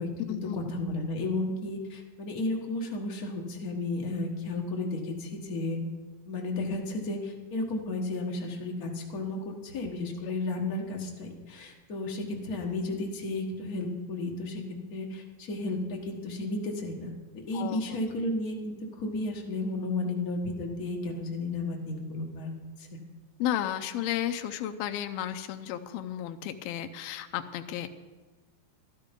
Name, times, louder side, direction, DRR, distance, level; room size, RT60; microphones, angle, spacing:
voice 1, 0.0-5.8 6.3-14.6 14.9-22.9, left 2 dB, 60° left, 0 dB, 0.9 m, -33 dB
voice 2, 17.5-18.0 23.4-27.9, left 11 dB, 90° left, 7 dB, 2.5 m, -33 dB
12.5 x 12.0 x 5.2 m, 1.3 s
omnidirectional pair, 4.1 m